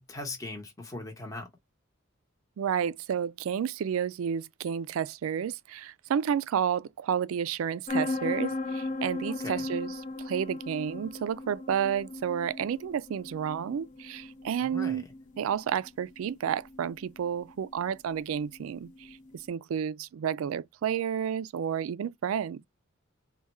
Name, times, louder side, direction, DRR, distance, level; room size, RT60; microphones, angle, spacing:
voice 1, 0.0-1.5 9.3-9.7 14.6-15.0, left 2 dB, 15° left, 0.8 m, -40 dB
voice 2, 2.6-15.0 15.4-22.6, right 8 dB, 80° right, 0.3 m, -31 dB
sound 1, 7.9-19.4, left 2 dB, 35° left, 0.5 m, -37 dB
3.5 x 2.2 x 4.2 m
head